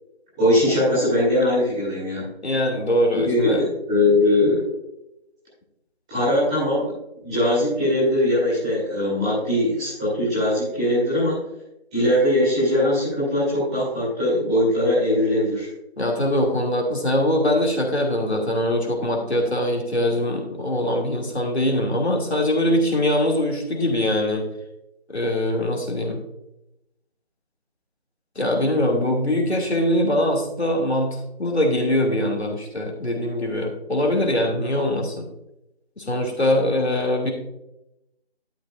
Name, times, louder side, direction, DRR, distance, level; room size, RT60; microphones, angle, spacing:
voice 1, 0.3-2.3 3.1-4.6 6.1-6.9 7.2-11.4 11.9-15.7, left 1 dB, 5° right, -13 dB, 2.4 m, -21 dB
voice 2, 2.4-3.6 16.0-24.5 25.1-26.2 28.4-35.3 36.0-37.3, left 1 dB, 85° left, 0 dB, 2.4 m, -22 dB
11.5 x 6.8 x 2.4 m, 0.88 s
figure-of-eight pair, 170°, 32 cm